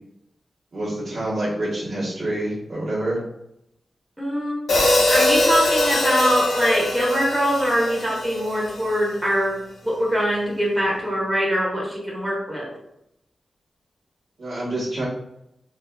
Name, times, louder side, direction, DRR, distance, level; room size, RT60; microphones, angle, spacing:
voice 1, 0.7-3.2 14.4-15.1, right 1 dB, 60° right, -8 dB, 1.2 m, -27 dB
voice 2, 4.2-4.6 5.1-9.6 9.8-12.7, equal, 10° right, -5 dB, 1.2 m, -22 dB
Hi-hat, 4.7-8.9, left 1 dB, 85° left, 0.5 m, -22 dB
2.6 x 2.4 x 2.3 m, 0.81 s
cardioid pair, 40°, 0 cm